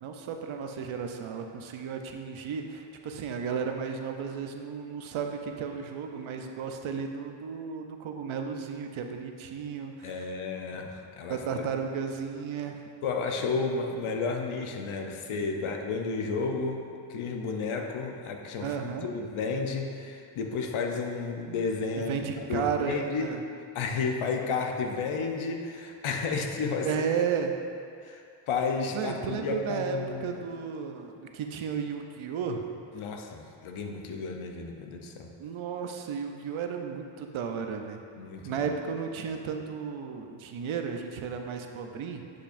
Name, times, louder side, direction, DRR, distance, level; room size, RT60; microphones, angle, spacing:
voice 1, 0.0-10.3 11.3-12.8 18.6-19.1 21.9-23.4 26.8-27.5 28.9-32.6 35.4-38.0 38.4-42.2, right 6 dB, 80° right, 4 dB, 0.7 m, -33 dB
voice 2, 10.0-11.6 13.0-23.3 23.7-26.9 28.0-30.4 32.9-35.3 38.2-38.7, left 4 dB, 85° left, 3 dB, 0.8 m, -32 dB
10.5 x 5.4 x 2.6 m, 2.4 s
cardioid pair, 65°, 48 cm